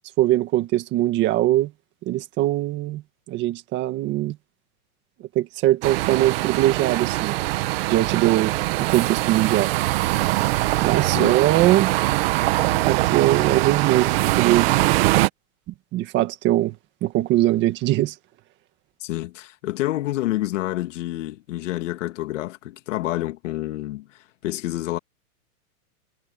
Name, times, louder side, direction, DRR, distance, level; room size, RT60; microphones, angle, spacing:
voice 1, 0.2-1.7 2.0-3.0 3.3-4.4 5.3-7.4 7.9-9.7 10.8-11.9 12.6-14.7 15.9-16.7 17.0-18.1, right 15 dB, 25° right, 1.7 m, -21 dB
sound 1, 5.8-15.3, right 19 dB, 40° right, 1.5 m, -22 dB
voice 2, 19.0-25.0, left 16 dB, 55° left, 2.1 m, -28 dB
supercardioid pair, 165°, 44 cm